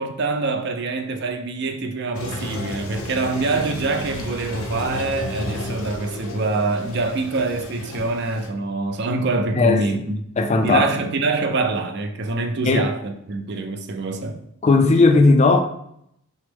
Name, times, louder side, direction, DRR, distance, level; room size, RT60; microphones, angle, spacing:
voice 1, 0.0-10.2 10.6-14.4, right 3 dB, 55° right, 0.5 m, -25 dB
Toilet flush, 2.1-8.5, left 1 dB, 85° left, 0.7 m, -32 dB
voice 2, 9.5-10.0 10.4-10.9 12.7-12.9 14.6-15.6, left 3 dB, 30° left, 0.4 m, -16 dB
6.1 x 2.1 x 3.4 m
head